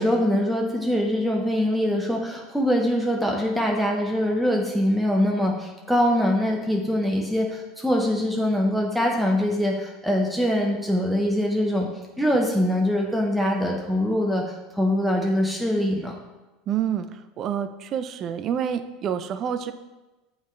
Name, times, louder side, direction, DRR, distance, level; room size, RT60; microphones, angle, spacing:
voice 1, 0.0-11.9 12.2-16.1, equal, ahead, 0 dB, 0.7 m, -23 dB
voice 2, 16.7-19.7, right 9 dB, 40° right, 10 dB, 0.4 m, -28 dB
7.2 x 3.1 x 4.3 m, 1.1 s
supercardioid pair, 110°, 0 cm